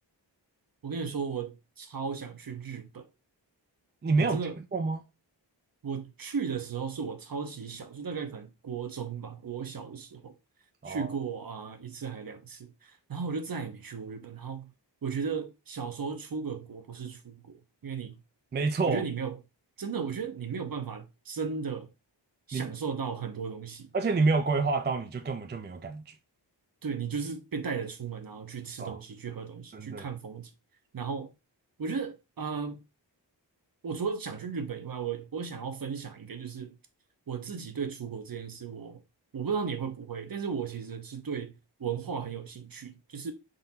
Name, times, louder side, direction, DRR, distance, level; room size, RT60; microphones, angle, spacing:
voice 1, 0.8-3.1 4.2-4.6 5.8-10.3 10.9-14.7 15.0-18.2 18.8-19.4 19.8-21.9 22.5-23.9 26.8-30.5 30.9-31.3 31.8-32.8 33.8-36.7 37.3-39.0 39.3-43.3, right 6 dB, 50° right, 0.8 m, -35 dB
voice 2, 4.0-4.4 4.7-5.0 10.8-11.1 18.5-19.0 22.5-22.7 23.9-26.1 28.8-29.0 29.7-30.1, right 3 dB, 25° right, 0.4 m, -28 dB
3.9 x 2.6 x 4.0 m
wide cardioid pair, 80°, 44 cm